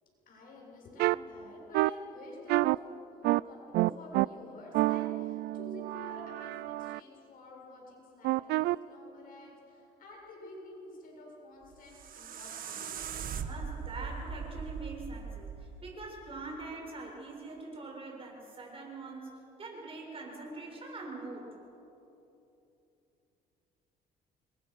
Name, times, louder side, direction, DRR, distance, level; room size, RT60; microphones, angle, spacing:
voice 1, 0.0-2.8 3.1-12.9 13.2-13.3, left 2 dB, 55° left, -1 dB, 7.7 m, -50 dB
sound 1, 1.0-1.2 1.7-1.9 2.5-2.8 3.2-3.4 3.7-4.3 4.7-7.0 8.2-8.8, right 18 dB, 80° right, 0.5 m, -28 dB
sound 2, 11.6-16.7, right 6 dB, 55° right, 1.7 m, -40 dB
voice 2, 13.4-21.5, right 3 dB, 35° right, 0 dB, 7.0 m, -43 dB
29.0 x 22.5 x 6.5 m, 2.9 s
cardioid pair, 110°, 17 cm